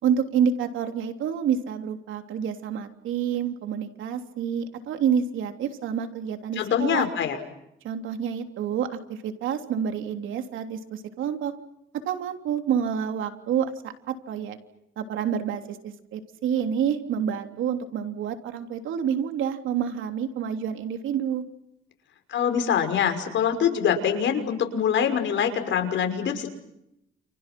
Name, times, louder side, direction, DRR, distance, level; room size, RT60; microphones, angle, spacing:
voice 1, 0.0-7.1 7.8-11.5 11.9-14.6 15.0-21.4, right 8 dB, 80° right, 6 dB, 3.3 m, -28 dB
voice 2, 6.6-7.4 22.3-26.5, left 8 dB, 70° left, 6 dB, 5.9 m, -24 dB
29.5 x 29.5 x 6.2 m, 0.81 s
cardioid pair, 90°, 20 cm